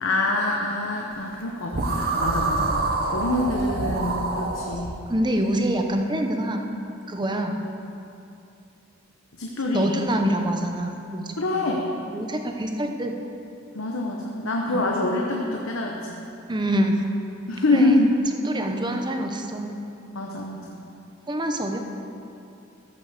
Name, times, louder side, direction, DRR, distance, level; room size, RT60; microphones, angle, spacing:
voice 1, 0.0-2.7 3.1-4.9 9.4-9.9 11.4-11.8 13.7-16.2 17.5-18.1 20.1-20.8, left 2 dB, 80° left, -1 dB, 1.0 m, -25 dB
sound 1, 1.7-4.9, right 3 dB, 50° right, 1.0 m, -26 dB
voice 2, 5.1-6.6 7.1-7.6 9.7-11.2 11.5-11.6 12.1-13.1 14.7-14.8 16.5-17.0 17.7-18.0 18.4-19.8 21.3-21.8, right 1 dB, 20° right, 4 dB, 0.9 m, -25 dB
13.5 x 6.1 x 6.6 m, 2.7 s
head